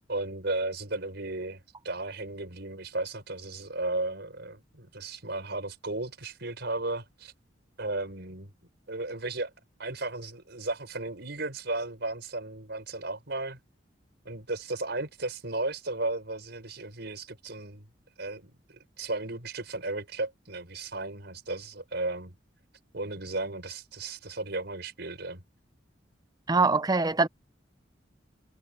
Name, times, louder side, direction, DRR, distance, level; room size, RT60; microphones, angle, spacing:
voice 1, 0.1-7.3 7.8-8.5 8.9-9.5 9.8-13.6 14.2-17.9 18.2-22.4 22.9-25.4, right 2 dB, 60° right, 6.1 m, -35 dB
voice 2, 26.5-27.3, right 3 dB, 20° right, 0.7 m, -23 dB
head